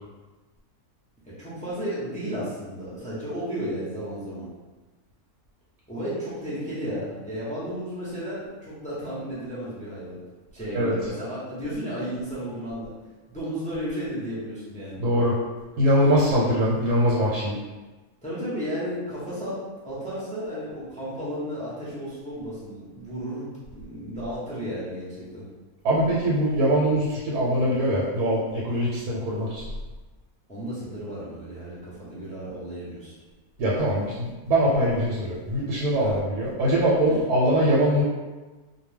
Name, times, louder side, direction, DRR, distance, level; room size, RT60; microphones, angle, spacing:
voice 1, 1.3-4.5 5.9-10.2 10.5-12.9 13.3-15.0 18.2-19.6 19.8-25.4 30.5-33.1 35.9-36.2 37.0-37.2, equal, 10° left, -10 dB, 0.3 m, -33 dB
voice 2, 15.0-15.3 15.8-17.5 25.8-29.6 33.6-38.0, equal, 85° right, -6 dB, 1.1 m, -22 dB
2.4 x 2.2 x 3.2 m, 1.2 s
omnidirectional pair, 1.6 m